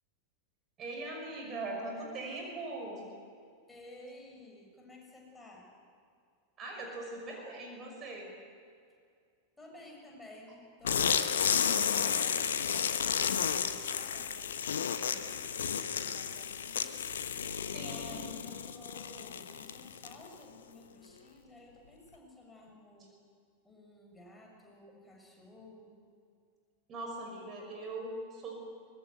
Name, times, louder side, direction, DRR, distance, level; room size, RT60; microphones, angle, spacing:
voice 1, 0.8-3.0 6.6-8.3 17.7-18.5 26.9-28.5, right 2 dB, 30° right, 1 dB, 5.9 m, -41 dB
voice 2, 3.7-5.7 9.6-12.5 13.0-17.1 17.7-23.1 23.6-26.0, left 1 dB, 5° left, -2 dB, 6.9 m, -53 dB
sound 1, 10.8-20.3, left 7 dB, 65° left, 1.2 m, -32 dB
24.5 x 22.0 x 8.1 m, 2.3 s
figure-of-eight pair, 90°, 0 cm